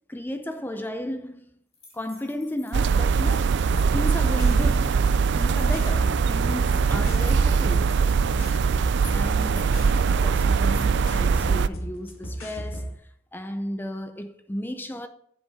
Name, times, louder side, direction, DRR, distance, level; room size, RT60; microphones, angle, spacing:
voice 1, 0.1-1.5 1.9-3.6 3.9-5.0 5.4-8.0 9.1-15.1, left 1 dB, 10° left, 0.4 m, -34 dB
sound 1, 1.7-11.3, left 3 dB, 25° left, 2.7 m, -50 dB
sound 2, 2.7-11.7, right 5 dB, 50° right, 0.3 m, -22 dB
sound 3, 3.6-12.9, right 1 dB, 65° left, 1.8 m, -36 dB
8.0 x 7.5 x 4.7 m
head